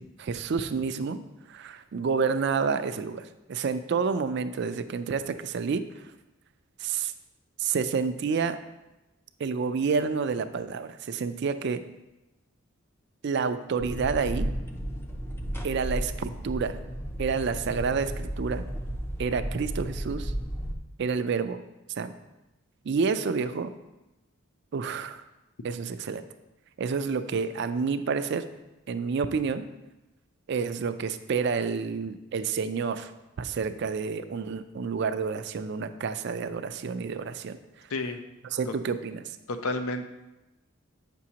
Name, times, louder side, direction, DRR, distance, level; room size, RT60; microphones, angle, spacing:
voice 1, 0.2-1.2 1.5-6.1 6.8-7.1 7.6-8.6 9.4-11.8 13.2-14.5 15.6-16.8 17.2-18.6 19.2-20.3 21.0-21.6 22.0-22.2 22.9-23.7 24.7-25.2 25.6-26.3 26.8-28.5 28.9-29.7 30.5-33.1 33.4-37.6 38.5-39.2, right 5 dB, 55° right, 11 dB, 0.4 m, -29 dB
sound 1, 13.8-20.7, equal, 10° left, 0.5 m, -33 dB
voice 2, 39.5-40.1, left 2 dB, 85° left, 7 dB, 0.6 m, -30 dB
8.2 x 6.1 x 2.8 m, 1.0 s
head